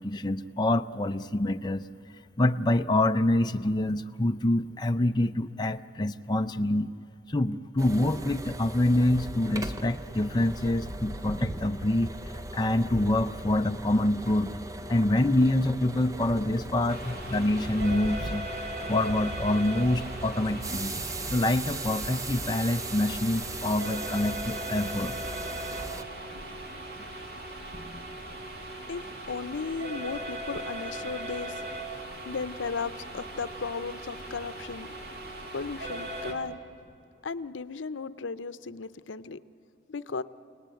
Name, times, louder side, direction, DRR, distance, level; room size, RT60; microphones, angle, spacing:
voice 1, 0.0-1.8 2.4-6.9 7.3-14.5 14.9-18.5 18.9-21.0 21.3-25.2 26.9-27.0, left 1 dB, 25° left, 7 dB, 0.5 m, -26 dB
sound 1, 7.8-26.0, right 1 dB, 20° right, 0.7 m, -38 dB
sound 2, 16.9-36.3, right 1 dB, 55° right, 2.9 m, -39 dB
sound 3, 21.1-32.0, equal, 40° right, 4.8 m, -56 dB
voice 2, 29.3-31.6 32.3-35.0 35.5-36.6 37.2-39.4 39.9-40.2, left 4 dB, 90° left, 14 dB, 0.6 m, -35 dB
29.0 x 18.5 x 9.1 m, 2.6 s
head